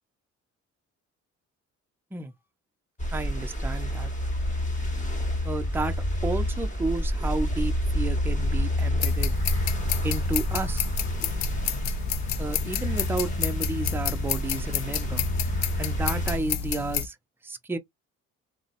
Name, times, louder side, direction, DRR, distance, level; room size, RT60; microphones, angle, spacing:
sound 1, 3.0-16.4, left 1 dB, 25° left, 1.1 m, -29 dB
voice 1, 3.1-4.1 5.4-5.9 6.2-9.4 10.0-10.9 12.4-15.3 15.8-17.2 17.4-17.8, right 3 dB, 5° right, 0.4 m, -32 dB
sound 2, 9.0-17.1, left 7 dB, 65° left, 0.4 m, -30 dB
2.6 x 2.0 x 2.5 m
cardioid pair, 90°, 30 cm